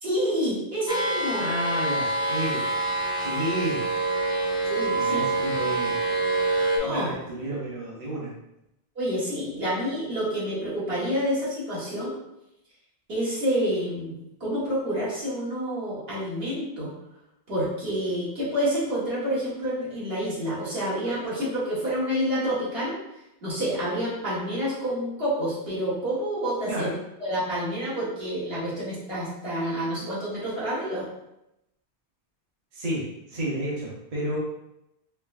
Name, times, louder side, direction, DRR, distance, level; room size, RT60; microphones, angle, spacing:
voice 1, 0.0-1.5 4.6-5.2 6.8-7.1 9.0-12.2 13.1-14.1 14.4-16.9 17.5-23.0 23.4-26.9 27.2-31.1, equal, 65° right, -8 dB, 1.8 m, -28 dB
sound 1, 0.9-6.8, right 2 dB, 5° right, 0.5 m, -26 dB
voice 2, 1.4-2.7 3.2-3.9 4.9-6.0 6.8-8.3 26.7-27.0 32.7-34.4, right 1 dB, 40° right, -5 dB, 0.9 m, -31 dB
4.5 x 3.1 x 2.5 m, 0.86 s
omnidirectional pair, 1.1 m